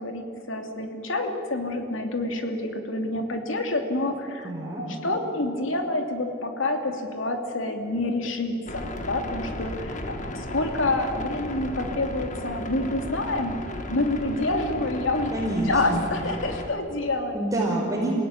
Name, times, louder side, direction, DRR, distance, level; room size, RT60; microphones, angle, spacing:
voice 1, 0.0-4.5 4.8-13.6 13.9-15.3 15.7-17.3, left 2 dB, 85° left, 4 dB, 2.9 m, -28 dB
voice 2, 4.4-4.8 15.3-16.0 17.3-18.2, right 1 dB, 20° right, -6 dB, 5.3 m, -27 dB
sound 1, 8.7-16.7, left 1 dB, 40° left, 1.9 m, -35 dB
28.0 x 17.0 x 9.9 m, 2.6 s
head